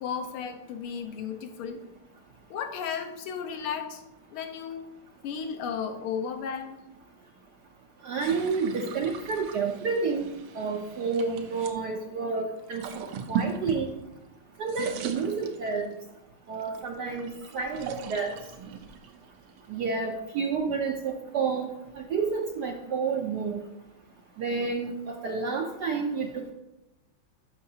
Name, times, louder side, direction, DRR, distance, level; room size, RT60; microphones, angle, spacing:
voice 1, 0.0-1.8 2.5-4.0 4.3-4.9 5.2-6.8, left 7 dB, 80° left, 7 dB, 1.7 m, -34 dB
voice 2, 8.0-10.3 10.5-12.8 13.3-13.9 14.6-15.9 16.5-18.4 19.7-21.7 22.0-23.6 24.4-26.5, right 5 dB, 65° right, 1 dB, 1.0 m, -30 dB
sound 1, 8.2-11.8 12.6-14.3 14.6-16.0 16.6-20.0, right 7 dB, 80° right, 1.6 m, -38 dB
13.0 x 5.6 x 2.8 m, 0.97 s
omnidirectional pair, 2.4 m